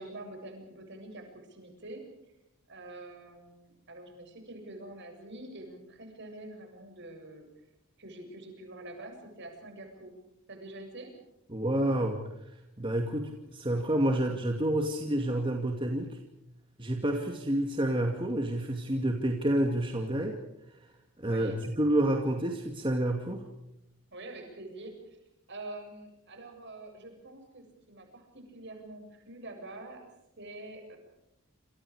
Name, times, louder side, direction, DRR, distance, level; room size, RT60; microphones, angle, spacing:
voice 1, 0.0-2.1 2.7-7.5 8.0-10.1 10.5-11.1 21.2-21.6 24.1-25.2 25.5-30.1 30.4-31.0, right 2 dB, 50° right, 4 dB, 7.5 m, -46 dB
voice 2, 11.5-12.2 12.8-16.2 16.8-20.4 21.2-23.4, right 1 dB, 25° right, 2 dB, 2.3 m, -29 dB
28.0 x 27.5 x 4.9 m, 0.85 s
head